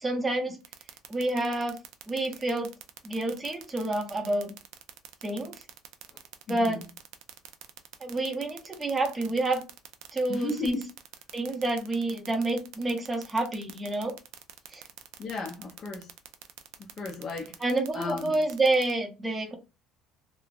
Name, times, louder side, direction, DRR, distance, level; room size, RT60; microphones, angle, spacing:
voice 1, 0.0-0.6 1.1-1.8 2.1-2.7 3.0-4.5 5.2-5.5 6.5-6.8 8.0-9.7 10.1-10.8 11.3-14.1 14.7-14.8 17.6-19.6, right 2 dB, 15° right, 0.7 m, -28 dB
sound 1, 0.6-18.9, right 14 dB, 75° right, 0.4 m, -45 dB
voice 2, 6.5-6.9 10.3-10.8 15.2-16.1 17.0-17.5 17.9-18.3, left 3 dB, 40° left, 0.6 m, -34 dB
3.1 x 2.0 x 2.4 m
cardioid pair, 125°, 0 cm